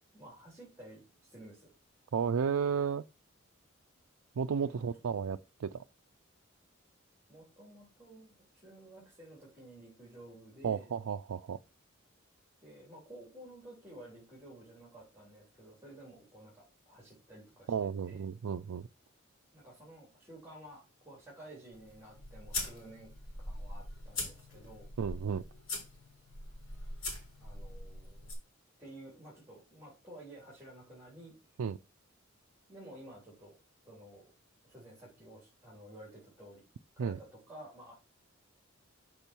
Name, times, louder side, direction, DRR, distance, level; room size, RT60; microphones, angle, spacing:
voice 1, 0.1-1.7 4.6-4.8 7.3-10.9 12.6-17.7 18.1-18.2 19.5-23.1 23.4-24.9 27.4-28.3 28.8-31.4 32.7-33.6 33.8-34.3 34.6-36.6 37.0-37.9, right 1 dB, 10° right, 3.7 m, -52 dB
voice 2, 2.1-3.0 4.4-5.8 10.6-11.6 17.7-18.9 25.0-25.4 31.6-31.8 37.0-37.2, right 6 dB, 90° right, 0.4 m, -33 dB
sound 1, 21.7-28.3, left 2 dB, 70° left, 4.1 m, -42 dB
6.9 x 6.2 x 4.5 m
head